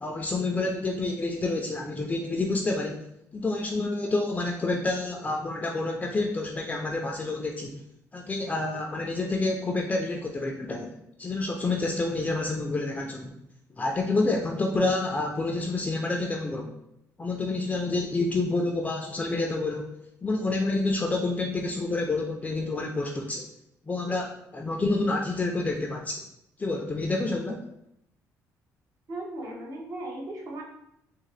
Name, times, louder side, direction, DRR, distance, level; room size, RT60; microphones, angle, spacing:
voice 1, 0.0-3.0 3.3-7.8 8.1-10.9 11.2-13.3 13.7-16.7 17.2-19.9 20.2-23.5 23.8-26.2 26.6-27.6, left 2 dB, 20° left, 1 dB, 0.4 m, -28 dB
voice 2, 29.1-30.6, right 1 dB, 55° right, -1 dB, 1.0 m, -37 dB
3.7 x 2.1 x 3.2 m, 0.79 s
cardioid pair, 90°, 6 cm